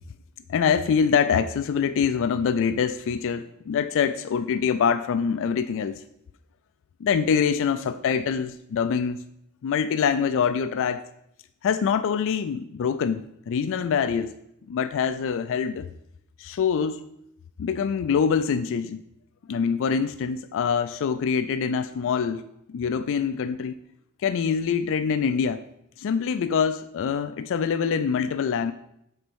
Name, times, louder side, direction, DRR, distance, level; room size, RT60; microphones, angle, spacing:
voice 1, 0.5-6.0 7.0-9.2 9.6-11.0 11.6-14.3 14.7-15.9 16.4-17.0 17.6-19.0 19.5-22.4 22.7-23.8 24.2-25.6 26.0-28.7, left 6 dB, 60° left, 11 dB, 0.3 m, -24 dB
6.5 x 4.1 x 6.1 m, 0.77 s
head